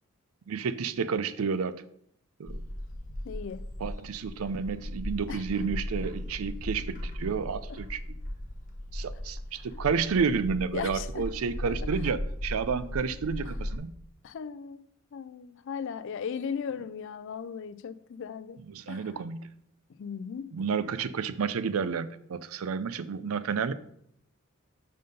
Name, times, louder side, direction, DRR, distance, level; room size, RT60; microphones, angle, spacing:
voice 1, 0.5-1.8 2.4-2.6 3.8-8.0 8.9-13.9 18.7-19.5 20.5-23.7, right 5 dB, 75° right, 0.4 m, -30 dB
Bird, 2.4-13.8, left 1 dB, 40° left, 1.0 m, -37 dB
voice 2, 3.2-3.7 5.3-5.4 10.7-11.3 11.7-11.8 14.2-18.6 18.9-19.2 20.0-20.5, left 6 dB, 60° left, 0.4 m, -37 dB
5.7 x 5.4 x 5.2 m
head